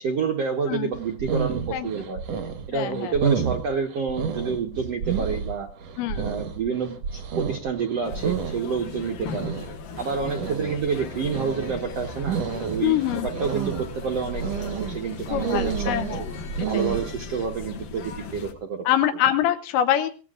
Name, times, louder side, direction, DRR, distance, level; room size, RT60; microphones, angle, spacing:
voice 1, 0.0-2.2 2.7-5.7 6.2-9.5 10.0-15.9 16.6-18.8, right 5 dB, 90° right, 2 dB, 1.3 m, -28 dB
sound 1, 0.9-17.1, right 6 dB, 75° right, 1.5 m, -30 dB
voice 2, 2.7-3.1 6.0-6.3 9.3-9.4 12.8-13.3 15.3-16.2 16.6-16.9 18.9-20.1, left 11 dB, 85° left, 9 dB, 3.2 m, -24 dB
sound 2, 8.0-18.5, left 4 dB, 60° left, 2.8 m, -37 dB
22.0 x 17.0 x 2.5 m, 0.36 s
omnidirectional pair, 5.1 m